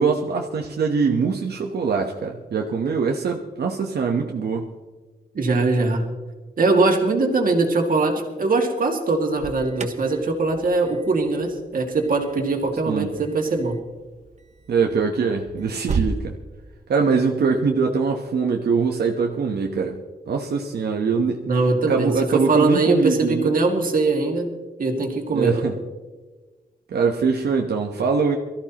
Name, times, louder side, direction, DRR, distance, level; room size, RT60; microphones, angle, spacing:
voice 1, 0.0-4.7 12.9-13.1 14.7-16.4 16.9-20.0 20.3-21.5 21.9-23.5 25.3-25.7 26.9-28.4, right 5 dB, 90° right, 1 dB, 1.1 m, -23 dB
voice 2, 5.3-6.1 6.6-13.8 21.5-24.5 24.8-25.6, right 3 dB, 60° right, 2 dB, 2.2 m, -21 dB
Alarm, 9.1-16.2, right 5 dB, 45° right, 0.9 m, -35 dB
23.0 x 14.0 x 3.0 m, 1.3 s
wide cardioid pair, 150°, 16 cm